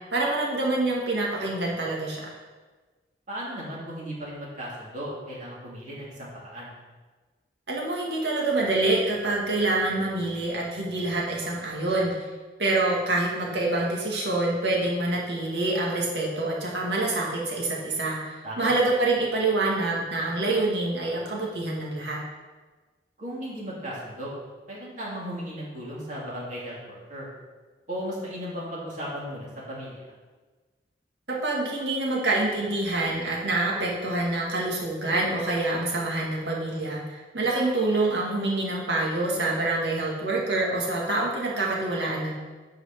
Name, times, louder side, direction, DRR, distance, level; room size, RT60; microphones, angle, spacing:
voice 1, 0.1-2.3 7.7-12.1 12.6-22.2 31.4-42.3, right 2 dB, 75° right, -3 dB, 2.2 m, -26 dB
voice 2, 3.3-6.7 18.4-18.7 23.2-24.3 24.7-27.3 27.9-30.0, equal, 45° right, -6 dB, 2.5 m, -36 dB
9.8 x 4.9 x 6.0 m, 1.3 s
head